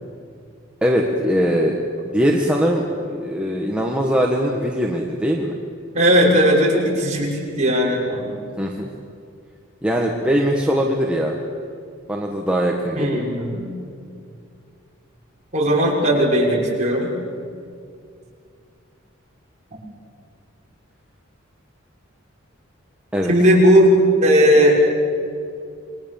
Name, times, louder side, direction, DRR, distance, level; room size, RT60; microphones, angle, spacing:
voice 1, 0.8-5.5 8.6-8.9 9.8-11.4 12.1-13.2 23.1-23.3, equal, 5° right, -1 dB, 1.7 m, -21 dB
voice 2, 5.9-8.4 13.0-13.7 15.5-17.1 23.3-23.9 24.2-24.8, equal, 35° right, -3 dB, 6.2 m, -17 dB
28.0 x 22.5 x 7.3 m, 2.3 s
head